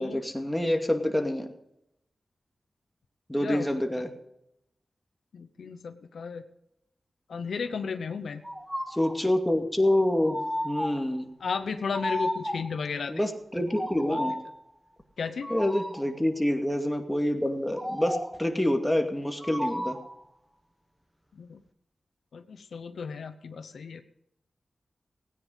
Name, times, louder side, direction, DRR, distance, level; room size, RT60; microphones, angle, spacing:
voice 1, 0.0-1.5 3.3-4.1 8.9-10.4 10.6-11.3 13.1-14.3 15.5-20.0, left 1 dB, 10° left, 4 dB, 2.4 m, -27 dB
voice 2, 5.3-6.4 7.3-8.4 11.4-13.2 14.1-14.2 15.2-15.5 21.3-21.6 22.3-24.0, left 5 dB, 85° left, 9 dB, 0.9 m, -34 dB
sound 1, 8.4-9.3 10.2-11.2 11.9-12.8 13.7-14.5 15.4-16.1 17.7-18.5 19.4-20.2, equal, 5° right, 1.5 m, -33 dB
16.5 x 9.8 x 5.4 m, 0.82 s
cardioid pair, 55°, 0 cm